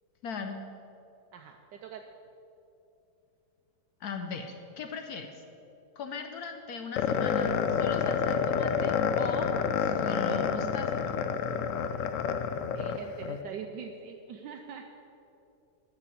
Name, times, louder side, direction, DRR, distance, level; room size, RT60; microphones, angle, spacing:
voice 1, 0.2-0.6 4.0-5.4 6.0-9.5 9.8-11.0, left 5 dB, 65° left, 5 dB, 1.0 m, -39 dB
voice 2, 1.3-2.1 12.7-14.8, right 7 dB, 75° right, 4 dB, 1.2 m, -43 dB
sound 1, 7.0-13.4, left 6 dB, 85° left, 0.7 m, -28 dB
13.0 x 4.8 x 8.4 m, 2.8 s
omnidirectional pair, 2.0 m